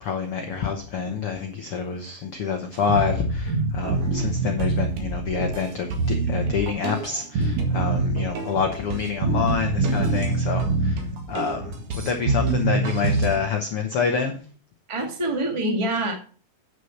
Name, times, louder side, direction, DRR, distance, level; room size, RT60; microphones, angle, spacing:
voice 1, 0.0-14.4, left 6 dB, 85° left, 4 dB, 1.2 m, -27 dB
sound 1, 2.9-13.4, right 3 dB, 55° right, 2.9 m, -25 dB
voice 2, 14.9-16.2, right 1 dB, 30° right, 3 dB, 0.5 m, -25 dB
9.6 x 6.5 x 5.7 m, 0.39 s
omnidirectional pair, 4.3 m